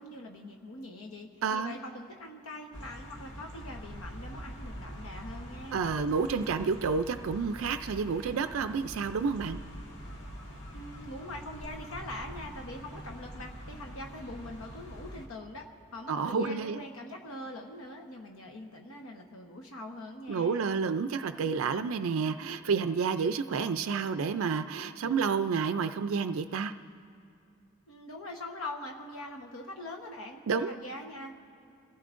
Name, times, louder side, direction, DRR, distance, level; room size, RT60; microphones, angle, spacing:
voice 1, 0.0-5.8 10.7-15.7 15.9-20.6 27.9-31.3, left 1 dB, 80° left, 2 dB, 1.1 m, -43 dB
voice 2, 1.4-1.7 5.7-9.6 16.1-16.8 20.3-26.7 30.5-30.8, right 5 dB, 65° right, 9 dB, 0.4 m, -30 dB
sound 1, 2.7-15.3, equal, 60° left, 1.7 m, -44 dB
27.5 x 15.5 x 2.5 m, 2.5 s
head